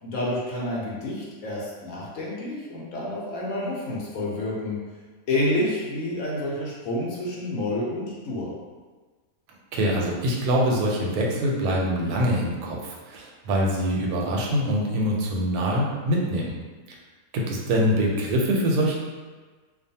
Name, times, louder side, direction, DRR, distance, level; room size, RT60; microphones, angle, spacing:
voice 1, 0.0-4.8 5.3-8.5, left 1 dB, 70° left, -5 dB, 1.0 m, -29 dB
voice 2, 9.7-16.5 17.3-19.0, equal, 85° right, -2 dB, 1.1 m, -24 dB
2.5 x 2.3 x 2.7 m, 1.4 s
omnidirectional pair, 1.5 m